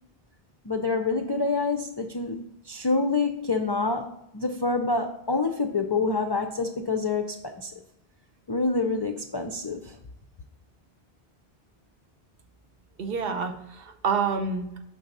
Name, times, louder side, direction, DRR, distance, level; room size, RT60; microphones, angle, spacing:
voice 1, 0.6-7.7 8.5-10.0, left 3 dB, 45° left, 3 dB, 0.3 m, -27 dB
voice 2, 13.0-14.8, right 5 dB, 70° right, 6 dB, 0.9 m, -28 dB
6.0 x 3.9 x 5.3 m, 0.83 s
omnidirectional pair, 1.0 m